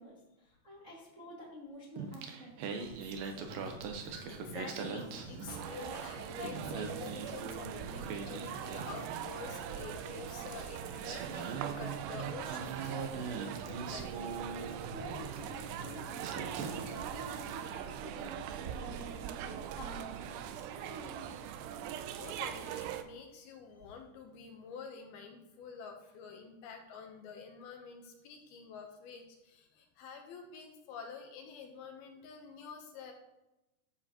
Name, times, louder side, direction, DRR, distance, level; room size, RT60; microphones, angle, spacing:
voice 1, 0.0-2.5 14.9-21.3, equal, 30° right, -6 dB, 1.4 m, -49 dB
Singing, 2.0-5.9 6.2-9.4 10.5-10.6 11.0-15.2 15.8-15.9 16.2-17.0, right 5 dB, 70° right, 2.3 m, -42 dB
sound 1, 2.8-17.8, right 1 dB, 50° right, 3.4 m, -50 dB
voice 2, 4.1-14.4 22.2-33.1, left 5 dB, 75° left, 4 dB, 2.7 m, -48 dB
sound 2, 5.5-23.0, right 9 dB, 90° right, 2.7 m, -42 dB
11.5 x 7.5 x 3.0 m, 0.95 s
omnidirectional pair, 4.7 m